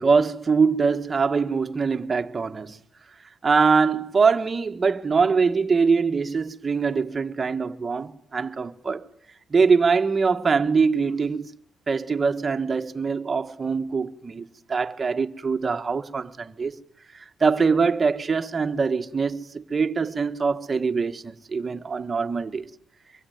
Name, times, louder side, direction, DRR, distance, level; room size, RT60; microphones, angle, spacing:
voice 1, 0.0-2.8 3.4-9.1 9.5-11.5 11.9-16.8 17.1-22.7, right 5 dB, 30° right, 1.5 m, -23 dB
24.5 x 23.0 x 9.4 m
cardioid pair, 90°, 0 cm